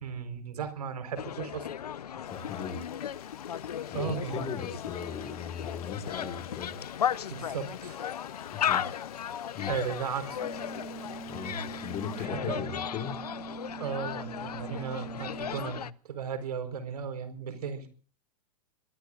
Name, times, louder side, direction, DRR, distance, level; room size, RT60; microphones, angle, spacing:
voice 1, 0.0-1.7 3.9-4.5 7.3-8.0 9.7-10.4 12.2-12.8 13.8-17.9, right 7 dB, 80° right, 10 dB, 4.4 m, -36 dB
sound 1, 1.2-15.9, left 9 dB, 90° left, 0.8 m, -36 dB
voice 2, 2.2-2.8 3.9-6.8 8.5-9.1 9.5-9.7 11.2-13.2, left 7 dB, 30° left, 5 dB, 5.3 m, -38 dB
Frying (food), 2.3-12.3, left 12 dB, 70° left, 2.8 m, -51 dB
sound 2, 10.4-15.6, right 6 dB, 15° right, 6.9 m, -44 dB
25.0 x 22.0 x 2.5 m, 0.40 s
hypercardioid pair, 120°, 19 cm